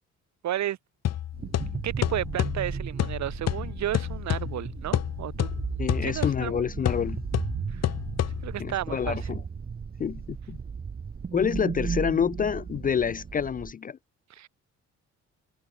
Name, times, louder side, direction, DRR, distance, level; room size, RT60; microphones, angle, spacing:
voice 1, 0.4-0.8 1.8-6.6 7.7-7.9 8.4-9.2 14.3-14.5, right 12 dB, 65° right, 1.2 m, -33 dB
sound 1, 1.0-8.8, left 11 dB, 60° left, 1.0 m, -30 dB
sound 2, 1.3-13.7, right 6 dB, 30° right, 1.1 m, -35 dB
voice 2, 5.8-7.2 8.6-9.4 10.0-10.6 11.3-14.0, left 7 dB, 30° left, 0.3 m, -28 dB
cardioid pair, 90°, 30 cm